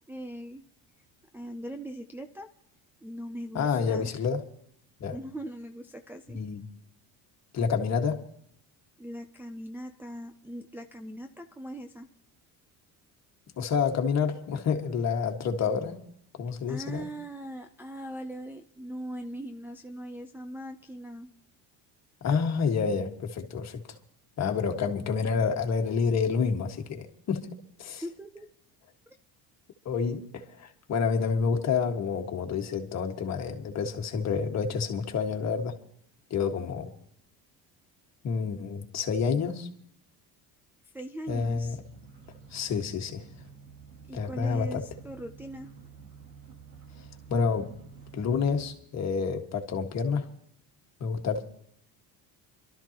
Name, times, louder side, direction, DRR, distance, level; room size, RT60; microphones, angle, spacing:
voice 1, 0.1-0.6 1.3-2.5 3.0-4.1 5.1-6.4 9.0-12.1 16.7-21.3 28.0-28.5 40.9-41.8 44.1-45.7, right 1 dB, 5° right, 0.5 m, -40 dB
voice 2, 3.5-4.4 5.0-5.2 6.3-6.6 7.5-8.2 13.6-16.0 16.4-17.1 22.2-23.8 24.4-27.5 27.8-28.0 29.9-35.7 36.3-36.9 38.2-39.7 41.3-41.8 42.5-43.2 44.1-44.8 47.3-47.7 48.1-50.3 51.0-51.4, left 5 dB, 45° left, 1.8 m, -28 dB
sound 1, 41.3-48.7, right 5 dB, 60° right, 2.7 m, -50 dB
26.0 x 13.0 x 3.0 m
cardioid pair, 135°, 38 cm